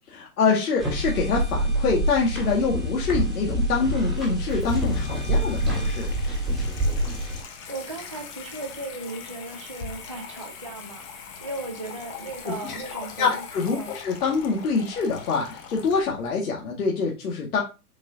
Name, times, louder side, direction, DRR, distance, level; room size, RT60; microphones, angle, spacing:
voice 1, 0.1-6.1 12.5-17.6, left 4 dB, 65° left, -2 dB, 2.0 m, -25 dB
sound 1, 0.8-7.4, right 1 dB, ahead, 1.9 m, -26 dB
Water tap faucet / Sink (filling or washing), 4.1-16.3, left 6 dB, 20° left, 0.7 m, -42 dB
voice 2, 7.7-13.9, right 2 dB, 25° right, 2 dB, 0.3 m, -37 dB
7.9 x 4.5 x 2.7 m, 0.29 s
hypercardioid pair, 145°, 48 cm